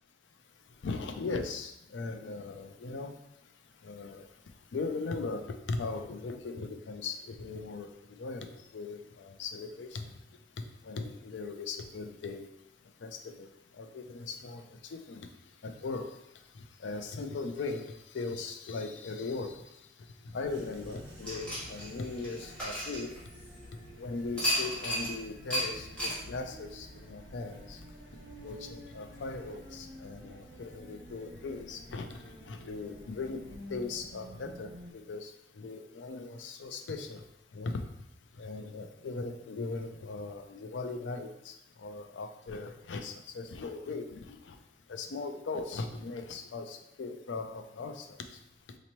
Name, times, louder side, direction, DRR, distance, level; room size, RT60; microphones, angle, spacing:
voice 1, 0.8-3.2 3.8-4.3 4.7-10.1 10.8-12.5 13.0-15.3 15.6-16.2 16.5-23.1 23.9-27.8 28.4-33.4 33.7-37.2 37.5-37.8 38.3-44.6 44.9-48.4, left 3 dB, 90° left, 7 dB, 0.4 m, -39 dB
sound 1, 20.4-34.9, equal, 70° right, 1.2 m, -50 dB
sound 2, 21.2-23.6 24.4-25.1 25.5-25.7 26.0-26.2, equal, 5° left, 1.4 m, -33 dB
4.1 x 2.9 x 2.9 m, 0.82 s
head